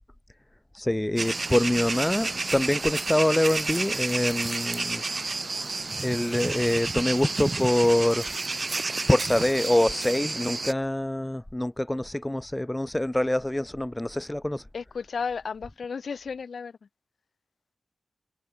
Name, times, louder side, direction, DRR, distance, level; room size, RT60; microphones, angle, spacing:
voice 1, 0.7-5.0 6.0-8.2 9.1-14.6, left 1 dB, 15° left, 0.3 m, -25 dB
sound 1, 1.2-10.7, right 3 dB, 45° right, 0.8 m, -30 dB
voice 2, 14.7-16.8, left 5 dB, 80° left, 3.1 m, -33 dB
cardioid pair, 65°, 0 cm